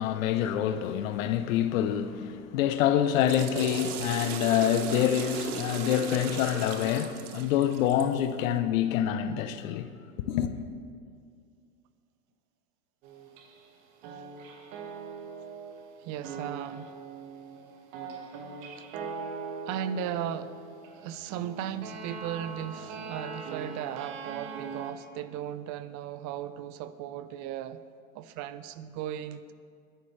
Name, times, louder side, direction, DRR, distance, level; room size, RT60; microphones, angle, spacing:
voice 1, 0.0-9.9 10.2-10.5, left 10 dB, 65° left, 0.9 m, -26 dB
Water / Toilet flush, 3.0-8.2, right 6 dB, 80° right, 1.2 m, -37 dB
sound 1, 13.0-13.8 14.0-24.9, right 5 dB, 60° right, 2.0 m, -41 dB
voice 2, 16.0-17.0 18.8-18.9 19.7-20.6 20.9-27.8 28.1-29.5, right 10 dB, 40° right, 0.7 m, -36 dB
21.0 x 11.0 x 3.3 m
hypercardioid pair, 105°, 44 cm